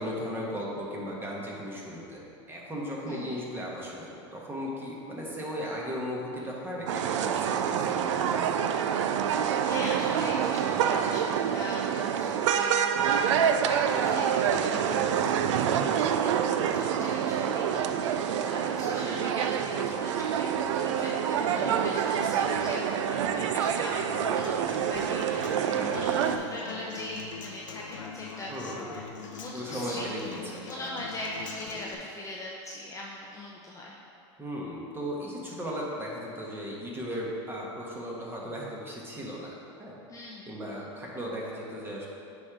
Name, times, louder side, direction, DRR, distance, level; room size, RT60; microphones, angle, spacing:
voice 1, 0.0-2.2 2.5-8.4 14.7-15.0 21.4-21.8 24.7-24.8 25.1-25.2 25.8-26.0 28.5-28.9 29.5-30.6 34.4-40.0 40.5-42.1, equal, 15° right, -4 dB, 1.4 m, -36 dB
voice 2, 3.0-3.4 9.3-20.5 20.8-28.5 28.9-34.0 40.1-40.5, left 1 dB, 20° left, -3 dB, 0.7 m, -41 dB
sound 1, 6.9-26.4, right 8 dB, 75° right, 0.4 m, -27 dB
Human voice / Acoustic guitar, 24.0-31.9, left 5 dB, 85° left, 0.6 m, -42 dB
9.3 x 3.4 x 3.8 m, 2.6 s
hypercardioid pair, 95°, 16 cm